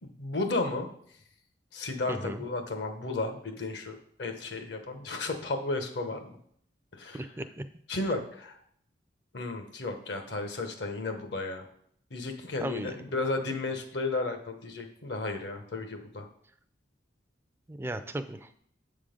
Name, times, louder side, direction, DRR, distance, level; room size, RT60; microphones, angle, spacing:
voice 1, 0.0-0.9 1.7-6.4 6.9-7.2 7.9-8.6 9.3-11.6 12.1-16.3, left 3 dB, 65° left, 6 dB, 0.9 m, -33 dB
voice 2, 2.1-2.4 7.1-7.6 12.6-13.0 17.7-18.6, right 1 dB, 15° right, 9 dB, 0.3 m, -36 dB
7.6 x 3.8 x 5.0 m, 0.65 s
head